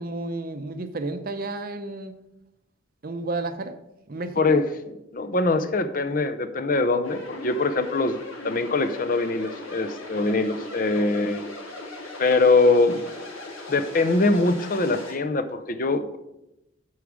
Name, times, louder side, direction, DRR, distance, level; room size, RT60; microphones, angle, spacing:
voice 1, 0.0-2.1 3.0-3.8 4.1-4.6, right 2 dB, 45° right, 10 dB, 0.6 m, -32 dB
voice 2, 4.4-8.2 8.4-11.4 12.2-13.0 13.7-16.2, left 3 dB, 40° left, 10 dB, 0.6 m, -23 dB
sound 1, 7.0-15.1, left 2 dB, 90° left, 2.8 m, -38 dB
8.5 x 4.7 x 6.3 m, 0.89 s
head